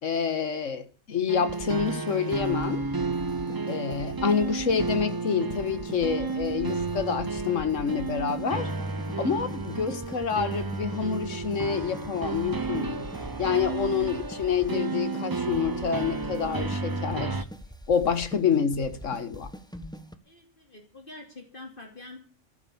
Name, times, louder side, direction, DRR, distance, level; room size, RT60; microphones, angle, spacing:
voice 1, 0.0-2.8 3.7-8.7 9.2-13.1 13.4-17.4 17.9-19.5, left 6 dB, 85° left, 1.7 m, -27 dB
sound 1, 1.3-17.4, right 3 dB, 25° right, 0.5 m, -32 dB
sound 2, 1.5-20.2, equal, 5° left, 1.2 m, -43 dB
voice 2, 20.2-22.2, left 2 dB, 45° left, 3.2 m, -46 dB
15.0 x 11.0 x 7.1 m
omnidirectional pair, 1.3 m